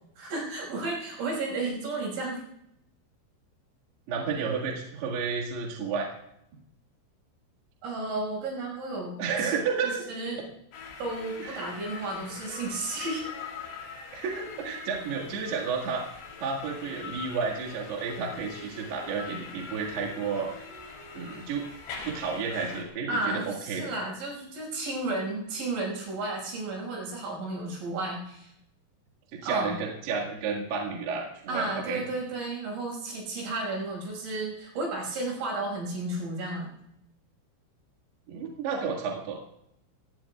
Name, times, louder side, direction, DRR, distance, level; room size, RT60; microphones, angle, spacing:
voice 1, 0.2-2.4 7.8-9.5 9.8-10.4 11.0-13.3 23.1-28.5 29.4-29.8 31.5-36.7, right 2 dB, 80° right, -1 dB, 8.2 m, -33 dB
voice 2, 4.1-6.1 9.2-10.0 11.4-11.6 11.9-12.0 14.1-16.1 16.4-20.5 21.1-21.6 22.1-23.9 29.4-32.0 38.3-39.4, right 5 dB, 65° right, -3 dB, 3.7 m, -31 dB
sound 1, 10.7-22.8, left 5 dB, 85° left, 5.9 m, -42 dB
24.5 x 18.0 x 2.4 m, 0.80 s
omnidirectional pair, 5.5 m